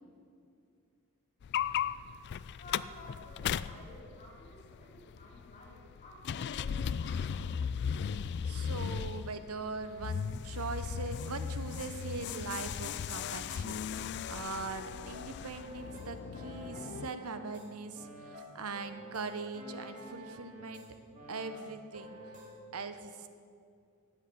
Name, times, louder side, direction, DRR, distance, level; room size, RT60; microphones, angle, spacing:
sound 1, 1.4-17.1, left 7 dB, 50° left, 0.3 m, -37 dB
voice 1, 2.5-7.6, left 1 dB, 35° left, -2 dB, 3.6 m, -53 dB
voice 2, 8.4-20.9 21.3-22.2 22.7-23.3, right 4 dB, 75° right, 10 dB, 0.8 m, -41 dB
sound 2, 15.0-17.7 17.9-20.9 21.1-22.5, equal, 35° right, 2.8 m, -49 dB
13.0 x 8.1 x 8.3 m, 2.4 s
head